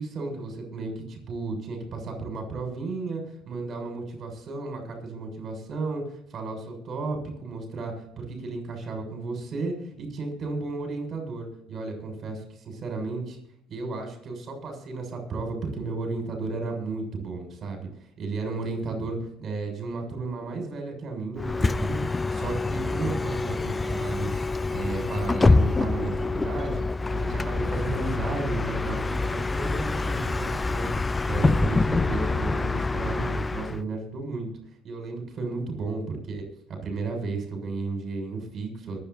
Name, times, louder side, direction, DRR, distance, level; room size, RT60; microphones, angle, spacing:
voice 1, 0.0-13.4 13.7-17.9 18.2-24.4 24.7-26.8 27.1-31.0 31.2-34.5 34.8-36.4 36.7-39.0, right 3 dB, 45° right, 4 dB, 7.0 m, -33 dB
Bus, 21.4-33.8, left 3 dB, 20° left, 0.6 m, -26 dB
22.5 x 9.6 x 4.2 m, 0.71 s
hypercardioid pair, 70°, 0 cm